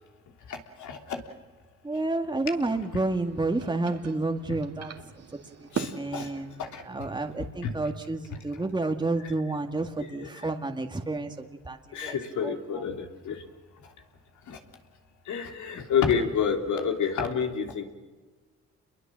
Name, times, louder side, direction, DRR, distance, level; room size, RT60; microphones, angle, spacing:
voice 1, 0.5-1.2 4.5-4.6 5.7-6.3 6.6-7.1 7.6-7.7 8.5-8.7 10.0-10.5 11.9-13.4 13.8-13.9 14.5-14.6 15.2-17.8, left 7 dB, 75° left, 4 dB, 3.4 m, -29 dB
voice 2, 1.8-4.9 5.6-6.5 6.9-12.2 12.4-12.8, right 2 dB, 15° right, 5 dB, 2.0 m, -30 dB
sound 1, 2.4-7.5, right 7 dB, 55° right, 2.3 m, -41 dB
27.5 x 22.5 x 7.6 m, 1.3 s
cardioid pair, 90°, 30 cm